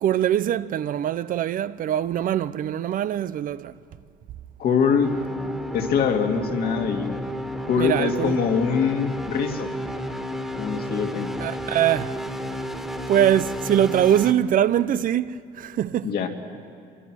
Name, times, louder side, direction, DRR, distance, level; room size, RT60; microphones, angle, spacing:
voice 1, 0.0-3.8 7.8-8.4 11.4-12.1 13.1-16.1, right 10 dB, 55° right, 0.6 m, -23 dB
voice 2, 4.6-5.2 5.7-7.2 7.6-9.7 10.6-11.3 16.0-16.3, left 6 dB, 65° left, 2.3 m, -23 dB
sound 1, 5.0-14.3, equal, 5° right, 1.8 m, -32 dB
25.0 x 24.5 x 6.2 m
cardioid pair, 110°, 17 cm